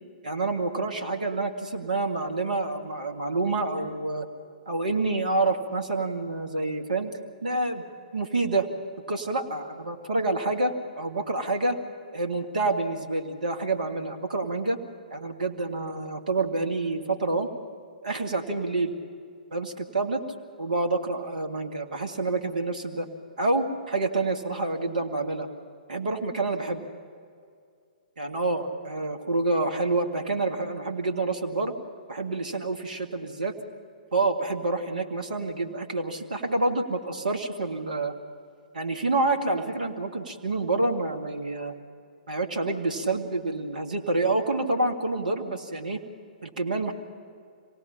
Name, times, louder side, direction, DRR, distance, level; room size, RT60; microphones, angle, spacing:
voice 1, 0.2-4.3 4.7-7.1 7.4-7.8 8.1-8.7 9.1-11.8 12.1-14.8 15.1-17.5 18.0-18.9 19.5-20.2 20.6-23.1 23.4-25.5 25.9-26.8 28.2-31.7 32.1-33.5 34.1-38.1 38.7-41.7 42.3-46.0 46.4-46.9, right 2 dB, 65° right, 4 dB, 1.9 m, -28 dB
26.5 x 18.0 x 5.8 m, 2.3 s
figure-of-eight pair, 120°, 5 cm